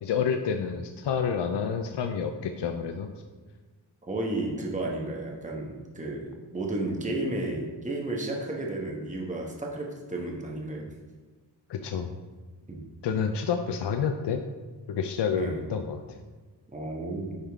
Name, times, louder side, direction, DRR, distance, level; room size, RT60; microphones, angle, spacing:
voice 1, 0.0-3.1 11.7-12.2 13.0-14.4 14.9-16.2, left 6 dB, 70° left, 6 dB, 0.5 m, -29 dB
voice 2, 4.1-10.8 12.7-12.8 15.3-15.6 16.7-17.4, right 2 dB, 15° right, -1 dB, 1.1 m, -32 dB
9.7 x 3.7 x 3.5 m, 1.3 s
wide cardioid pair, 110°, 44 cm